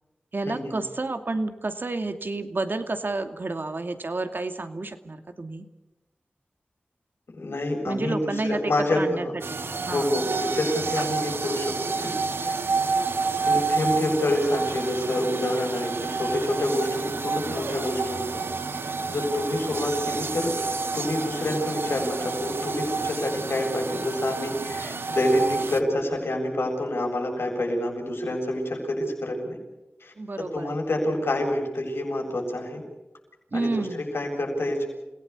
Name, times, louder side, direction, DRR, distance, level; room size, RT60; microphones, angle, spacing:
voice 1, 0.3-5.6 7.9-8.6 8.9-9.3 9.5-9.6 9.9-10.1 30.2-30.8 33.5-34.0, right 2 dB, 60° right, 7 dB, 2.5 m, -30 dB
voice 2, 7.3-9.3 9.8-12.1 12.4-12.5 13.4-18.4 18.8-20.5 20.9-29.6 30.0-32.8 33.5-34.9, left 1 dB, 80° left, 1 dB, 7.6 m, -27 dB
sound 1, 9.4-25.8, right 4 dB, 75° right, 1.4 m, -29 dB
29.0 x 18.0 x 8.5 m, 1.0 s
cardioid pair, 40°, 4 cm